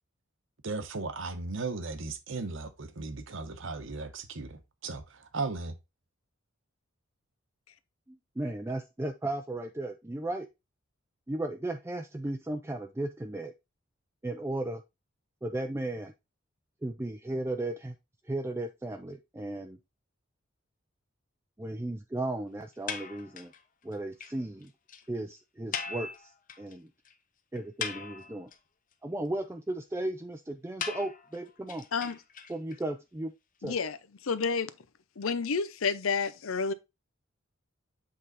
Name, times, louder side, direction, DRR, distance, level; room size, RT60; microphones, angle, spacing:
voice 1, 0.6-5.7, right 3 dB, 65° right, 1.0 m, -36 dB
voice 2, 8.1-10.5 11.3-13.5 14.2-14.8 15.4-16.1 16.8-17.9 18.3-19.8 21.6-23.5 23.8-24.7 25.1-26.3 26.6-26.9 27.5-28.5 29.0-31.8 32.5-33.3 33.6-33.8, right 1 dB, 10° right, 0.4 m, -35 dB
sound 1, 22.9-23.6 23.9-24.0 24.2-24.3 24.6-24.7 24.9-25.0 25.7-26.7 27.1-27.2 27.6-28.5 30.8-32.8, left 6 dB, 40° left, 0.8 m, -38 dB
voice 3, 33.6-34.0 34.2-34.7 35.2-36.7, left 5 dB, 90° left, 0.7 m, -30 dB
7.6 x 3.8 x 4.0 m
head